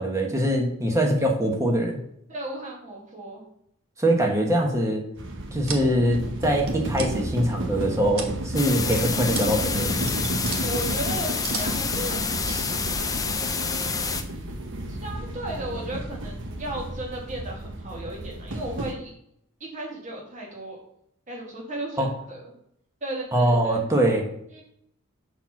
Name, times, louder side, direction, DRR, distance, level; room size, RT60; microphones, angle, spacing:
voice 1, 0.0-2.0 4.0-5.0 5.5-10.0 22.0-22.1 23.3-24.3, right 1 dB, 15° right, 1 dB, 1.3 m, -23 dB
voice 2, 2.3-3.4 10.5-12.8 13.1-14.4 14.9-19.1 19.6-20.8 21.3-22.5 23.0-23.8 24.5-24.6, right 1 dB, 35° right, -2 dB, 2.0 m, -36 dB
sound 1, 5.2-18.9, right 1 dB, 60° right, 1.1 m, -32 dB
sound 2, 5.3-5.9 6.6-7.1 7.7-8.4 8.8-9.0 9.3-9.5 9.8-10.6 11.1-11.9 12.5-12.6, right 5 dB, 80° right, 1.3 m, -35 dB
sound 3, 8.6-14.2, left 5 dB, 15° left, 0.5 m, -28 dB
7.0 x 4.4 x 5.8 m, 0.73 s
head